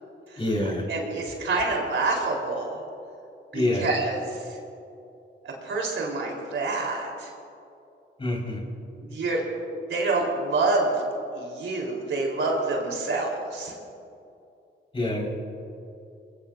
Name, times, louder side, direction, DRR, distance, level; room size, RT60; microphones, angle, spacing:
voice 1, 0.4-0.9 3.5-3.9 8.2-8.6 14.9-15.3, left 1 dB, 25° left, -1 dB, 4.6 m, -26 dB
voice 2, 0.9-2.8 3.5-4.4 5.4-7.3 9.0-9.5 9.9-11.0 11.3-13.7, right 3 dB, 75° right, -1 dB, 3.7 m, -27 dB
26.0 x 21.0 x 2.6 m, 2.7 s
cardioid pair, 100°, 20 cm